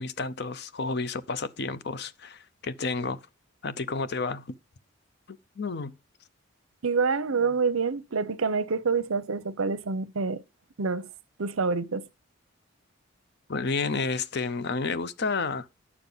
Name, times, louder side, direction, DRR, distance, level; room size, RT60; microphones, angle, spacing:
voice 1, 0.0-3.2 3.6-4.6 5.3-6.0 13.5-15.7, left 4 dB, 50° left, 0.6 m, -31 dB
voice 2, 6.8-10.4 10.8-11.1 11.4-12.1, right 4 dB, 75° right, 0.7 m, -27 dB
9.7 x 7.1 x 3.9 m
head